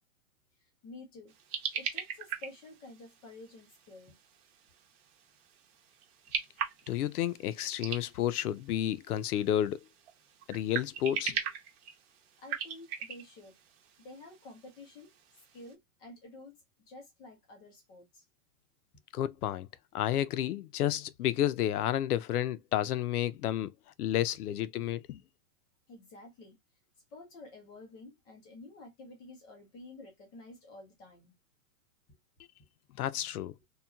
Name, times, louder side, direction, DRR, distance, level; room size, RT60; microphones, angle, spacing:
voice 1, 0.6-1.3 1.7-4.2 12.4-13.6 14.0-15.1 15.5-18.2 25.9-26.6 27.1-31.3 32.1-32.2 33.0-33.4, left 2 dB, 10° left, 0.3 m, -51 dB
sound 1, 1.3-15.7, right 8 dB, 45° right, 0.8 m, -41 dB
voice 2, 6.9-9.8 10.5-11.4 19.1-19.7 19.9-23.7 24.0-25.2 33.0-33.5, left 11 dB, 85° left, 0.6 m, -31 dB
3.0 x 2.3 x 2.2 m
hypercardioid pair, 140°, 44 cm